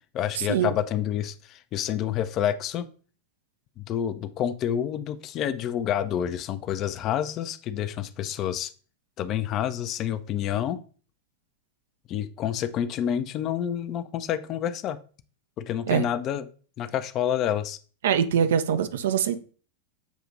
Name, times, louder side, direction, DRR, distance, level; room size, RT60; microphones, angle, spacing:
voice 1, 0.1-2.9 3.8-8.7 9.2-10.8 12.1-15.0 15.6-16.5 16.8-17.8, left 10 dB, 35° left, 0.3 m, -28 dB
voice 2, 18.0-19.4, right 8 dB, 60° right, 0.3 m, -23 dB
7.0 x 2.8 x 2.4 m
figure-of-eight pair, 90°, 0 cm